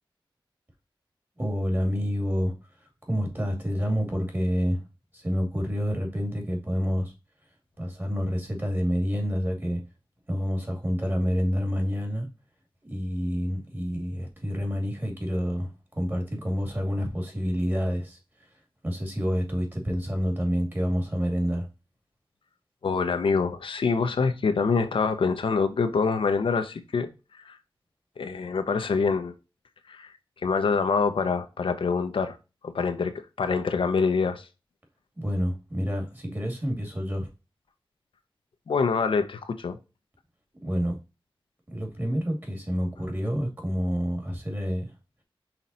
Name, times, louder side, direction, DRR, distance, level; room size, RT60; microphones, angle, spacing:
voice 1, 1.4-4.8 5.1-7.1 7.8-9.8 10.3-12.3 12.9-18.5 18.8-21.7 35.2-37.3 40.6-41.0 41.7-44.9, equal, 25° right, 2.4 m, -28 dB
voice 2, 22.8-27.1 27.4-27.6 28.2-29.3 29.9-30.1 30.4-32.4 32.6-34.5 38.7-39.8, left 5 dB, 75° left, 0.8 m, -25 dB
5.9 x 3.9 x 4.1 m
wide cardioid pair, 125°, 9 cm